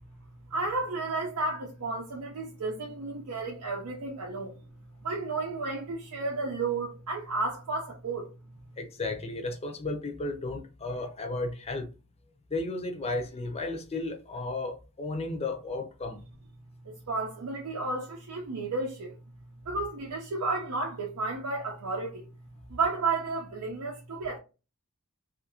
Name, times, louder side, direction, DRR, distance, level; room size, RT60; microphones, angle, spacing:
voice 1, 0.5-4.5 5.0-8.3 16.9-19.1 19.7-22.2 22.7-24.4, right 3 dB, 85° right, 0.6 m, -32 dB
voice 2, 8.8-11.9 12.5-16.2, left 2 dB, 30° left, 0.5 m, -34 dB
2.7 x 2.4 x 2.7 m
head